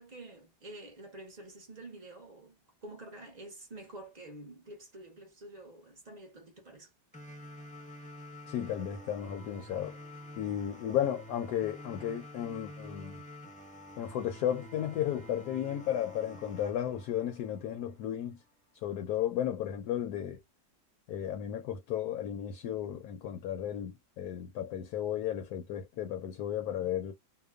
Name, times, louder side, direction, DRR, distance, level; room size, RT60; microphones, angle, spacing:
voice 1, 0.0-6.9, right 2 dB, 40° right, 0.6 m, -48 dB
sound 1, 7.1-18.1, equal, 10° left, 0.3 m, -49 dB
voice 2, 8.5-10.0 10.4-13.2 14.0-18.4 18.7-20.4 21.1-27.1, left 10 dB, 75° left, 1.1 m, -34 dB
2.8 x 2.2 x 2.2 m
omnidirectional pair, 1.8 m